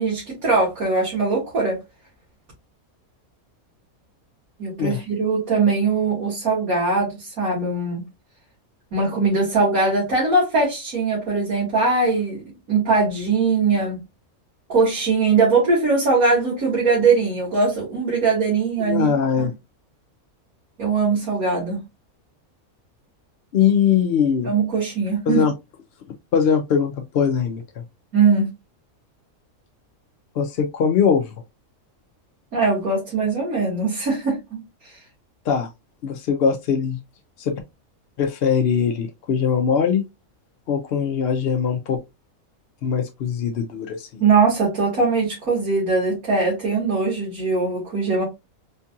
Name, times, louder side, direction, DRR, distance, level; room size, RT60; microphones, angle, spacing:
voice 1, 0.0-1.8 4.6-8.0 8.9-12.4 12.7-14.0 14.7-19.5 20.8-21.8 24.4-25.4 28.1-28.5 32.5-34.6 44.2-48.2, right 4 dB, 80° right, 2.2 m, -21 dB
voice 2, 18.8-19.5 23.5-24.5 25.3-25.5 26.3-27.8 30.3-31.3 35.5-35.7 36.0-37.0 37.4-37.5 38.2-40.0 40.7-42.0 42.8-44.2, left 7 dB, 65° left, 0.6 m, -21 dB
4.4 x 2.7 x 2.3 m
omnidirectional pair, 1.5 m